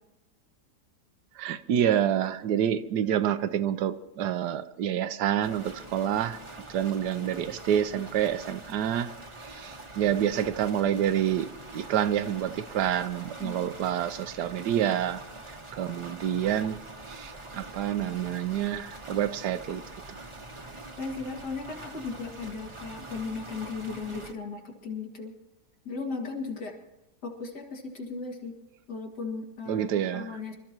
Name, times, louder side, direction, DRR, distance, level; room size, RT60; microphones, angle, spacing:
voice 1, 1.4-6.4 6.7-9.1 9.5-11.5 11.7-15.2 15.7-16.8 17.1-19.8 29.7-30.4, right 10 dB, 75° right, 12 dB, 1.2 m, -28 dB
sound 1, 5.4-24.3, right 2 dB, 20° right, 0.9 m, -44 dB
voice 2, 21.0-25.3 25.8-26.7 27.2-28.6 28.9-30.5, left 4 dB, 70° left, 0 dB, 2.8 m, -36 dB
27.5 x 13.5 x 3.0 m, 0.93 s
omnidirectional pair, 1.8 m